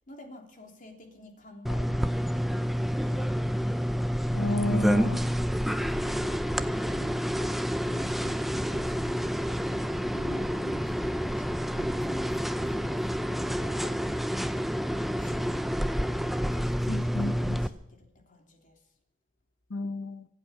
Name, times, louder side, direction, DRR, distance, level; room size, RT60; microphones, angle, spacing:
voice 1, 0.1-3.4 4.8-14.7 15.2-15.7 16.2-18.8, left 1 dB, 45° left, 3.2 m, -49 dB
sound 1, 1.7-17.7, equal, ahead, 0.6 m, -29 dB
voice 2, 4.3-5.2 16.9-17.6 19.7-20.3, left 2 dB, 85° left, 1.0 m, -31 dB
24.5 x 8.4 x 5.9 m
head